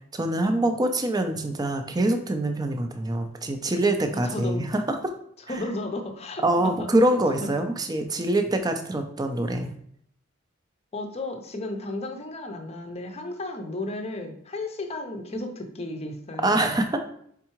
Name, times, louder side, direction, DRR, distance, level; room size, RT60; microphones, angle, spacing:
voice 1, 0.1-5.0 6.4-9.7 16.4-17.0, right 1 dB, 20° right, 6 dB, 0.5 m, -24 dB
voice 2, 4.1-4.7 5.5-6.9 7.4-7.7 10.9-16.8, left 2 dB, 30° left, 4 dB, 0.6 m, -34 dB
4.5 x 3.6 x 3.0 m, 0.66 s
head